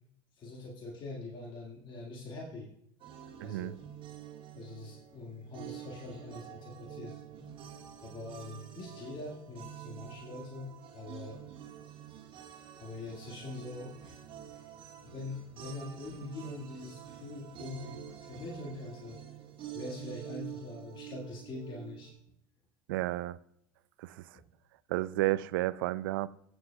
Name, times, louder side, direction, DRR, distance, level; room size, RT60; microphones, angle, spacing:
voice 1, 0.3-2.7 3.4-3.8 4.5-7.2 8.0-11.4 12.8-14.2 14.5-14.7 15.0-19.2 19.7-22.1 24.3-24.4, left 2 dB, 40° left, 2.0 m, -43 dB
sound 1, 3.0-22.1, right 10 dB, 45° right, 1.7 m, -48 dB
voice 2, 3.4-3.7 22.9-23.4 24.0-24.2 24.9-26.3, right 17 dB, 70° right, 0.4 m, -31 dB
22.5 x 8.0 x 2.3 m
hypercardioid pair, 75°, 12 cm